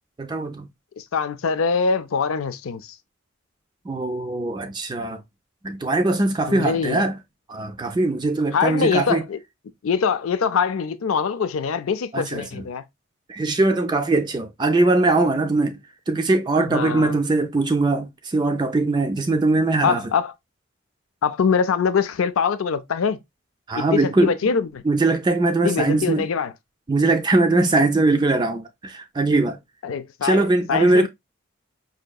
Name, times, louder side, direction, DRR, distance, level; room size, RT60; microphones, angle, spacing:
voice 1, 0.2-0.7 3.8-5.2 5.6-7.2 7.5-9.2 12.1-12.7 13.3-15.8 16.1-20.1 23.7-24.3 24.8-26.3 26.9-29.6 30.2-31.1, right 2 dB, 20° right, 0.3 m, -21 dB
voice 2, 1.0-3.0 6.5-7.0 8.5-9.4 9.8-12.8 16.6-17.1 19.8-20.3 21.2-23.2 23.9-24.8 25.6-26.5 29.8-31.1, left 6 dB, 85° left, 0.4 m, -23 dB
4.9 x 2.7 x 2.2 m
head